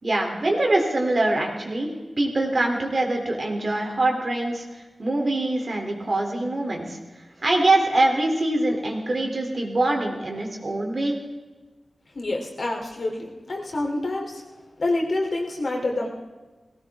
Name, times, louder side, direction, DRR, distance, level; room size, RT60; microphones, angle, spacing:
voice 1, 0.0-1.9 2.2-7.0 7.4-11.2, right 2 dB, 40° right, 1 dB, 2.9 m, -24 dB
voice 2, 12.1-14.4 14.8-16.1, left 2 dB, 50° left, 0 dB, 3.0 m, -27 dB
18.5 x 17.5 x 3.5 m, 1.2 s
wide cardioid pair, 115°, 0 cm